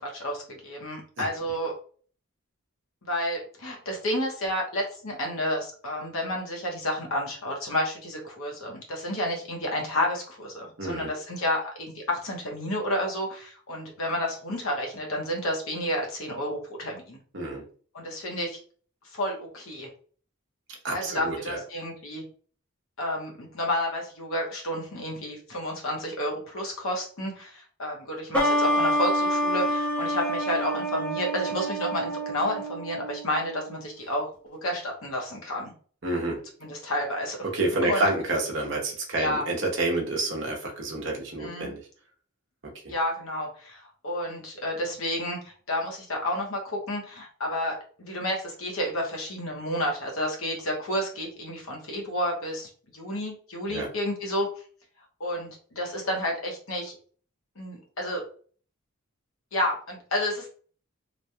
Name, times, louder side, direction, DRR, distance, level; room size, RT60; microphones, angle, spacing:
voice 1, 0.0-1.7 3.0-17.2 17.9-18.6 19.1-19.9 20.9-22.2 23.0-35.7 36.6-37.4 37.8-38.0 39.2-39.4 41.4-41.7 42.9-54.5 55.2-56.9 57.6-58.2 59.5-60.5, left 1 dB, 70° left, 1 dB, 0.9 m, -30 dB
voice 2, 10.8-11.1 17.3-17.6 20.8-21.6 36.0-36.4 37.5-41.8 42.8-42.9 53.7-53.9, right 2 dB, 55° right, -1 dB, 0.8 m, -28 dB
sound 1, 28.3-33.8, equal, 5° left, 0.5 m, -27 dB
3.1 x 2.2 x 2.7 m, 0.43 s
head